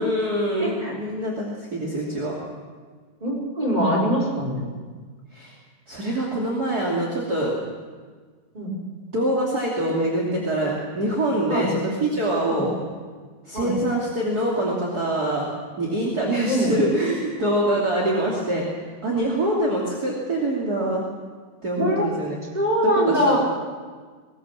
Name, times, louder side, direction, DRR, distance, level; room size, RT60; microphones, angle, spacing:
voice 1, 0.0-2.3 5.3-5.5 5.9-7.5 9.1-12.7 13.5-15.5 15.8-18.6 19.0-21.0 21.6-22.4 22.8-23.4, right 1 dB, 25° right, -3 dB, 2.4 m, -24 dB
voice 2, 0.6-0.9 3.2-4.7 8.5-8.7 11.5-11.7 12.5-12.6 13.5-13.7 16.5-16.7 21.7-22.0 22.5-23.4, equal, 10° right, -4 dB, 4.4 m, -23 dB
21.0 x 19.0 x 7.4 m, 1.5 s
omnidirectional pair, 5.1 m